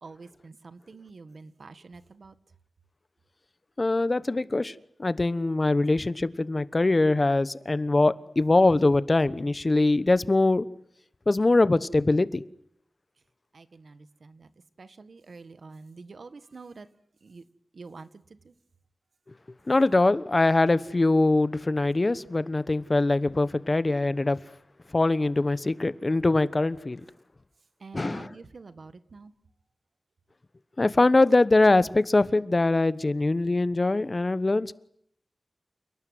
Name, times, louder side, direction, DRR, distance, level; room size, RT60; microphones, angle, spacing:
voice 1, 0.0-2.3 13.5-14.5 14.8-16.9 17.2-17.4 17.7-18.5 27.8-29.3, right 4 dB, 80° right, 1.7 m, -47 dB
voice 2, 3.8-4.7 5.0-10.7 11.3-12.4 19.7-24.4 24.9-27.0 27.9-28.3 30.8-34.7, left 2 dB, 40° left, 1.1 m, -23 dB
29.0 x 18.5 x 9.5 m
wide cardioid pair, 75°, 0 cm